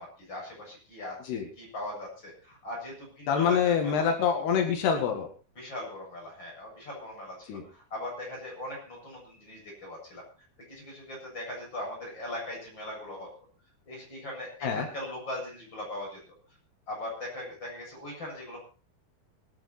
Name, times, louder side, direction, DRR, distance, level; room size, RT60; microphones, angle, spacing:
voice 1, 0.0-4.1 5.6-10.3 10.7-13.3 13.9-16.2 16.9-18.6, left 1 dB, 25° left, -1 dB, 8.1 m, -40 dB
voice 2, 3.3-5.3 7.5-7.6 14.6-14.9, left 7 dB, 85° left, 4 dB, 4.0 m, -26 dB
25.0 x 9.2 x 4.4 m, 0.35 s
omnidirectional pair, 4.5 m